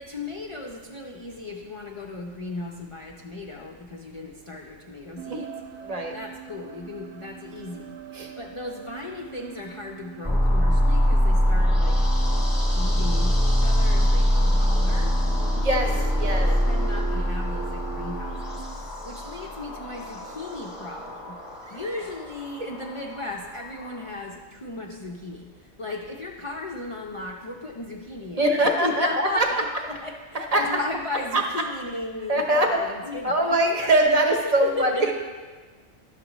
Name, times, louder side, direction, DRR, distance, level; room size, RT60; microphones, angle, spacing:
voice 1, 0.0-5.5 6.1-7.9 8.4-12.0 12.7-15.2 15.8-21.4 21.7-33.7 34.4-35.1, left 2 dB, 45° left, -1 dB, 0.4 m, -36 dB
sound 1, 5.2-18.6, right 10 dB, 75° right, 0.9 m, -42 dB
voice 2, 5.8-6.1 8.1-8.3 15.5-15.9 16.2-16.5 21.7-21.8 28.4-29.5 30.3-30.6 31.3-31.4 32.3-32.8 33.2-34.9, right 1 dB, 35° right, 3 dB, 0.8 m, -22 dB
sound 2, 10.2-24.1, equal, 20° left, 1.0 m, -24 dB
11.0 x 6.6 x 3.0 m, 1.4 s
omnidirectional pair, 1.3 m